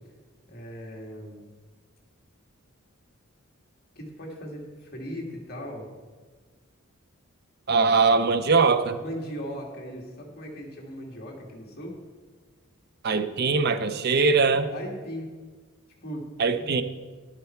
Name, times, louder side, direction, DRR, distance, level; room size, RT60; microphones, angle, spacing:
voice 1, 0.5-1.5 4.0-5.9 9.0-12.0 14.7-15.3 16.0-16.3 16.5-16.7, equal, 50° left, -1 dB, 2.2 m, -38 dB
voice 2, 7.7-9.0 13.0-14.7 16.4-16.8, right 4 dB, 50° right, 10 dB, 0.6 m, -21 dB
11.0 x 9.0 x 4.5 m, 1.4 s
head